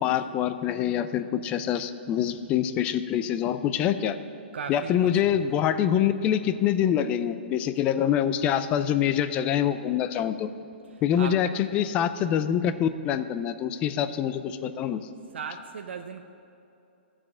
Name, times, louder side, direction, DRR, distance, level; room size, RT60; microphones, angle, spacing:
voice 1, 0.0-4.2 4.7-10.5 11.0-15.1, left 9 dB, 20° left, 11 dB, 0.3 m, -25 dB
voice 2, 4.5-5.4 10.9-11.3 15.3-16.2, right 6 dB, 75° right, 6 dB, 0.6 m, -37 dB
14.0 x 4.9 x 7.3 m, 2.8 s
hypercardioid pair, 160°, 6 cm